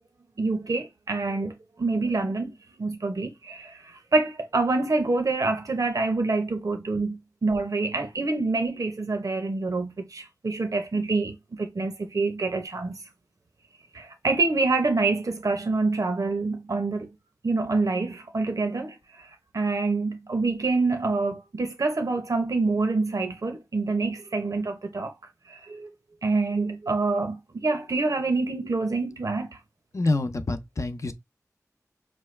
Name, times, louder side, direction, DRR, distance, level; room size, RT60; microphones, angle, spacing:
voice 1, 0.4-13.0 13.9-17.1 17.4-19.3 19.5-25.1 25.5-25.9 26.2-29.6, right 3 dB, 70° right, 0.8 m, -26 dB
voice 2, 29.9-31.1, left 2 dB, 55° left, 0.7 m, -27 dB
6.0 x 2.3 x 3.1 m
wide cardioid pair, 55°, 6 cm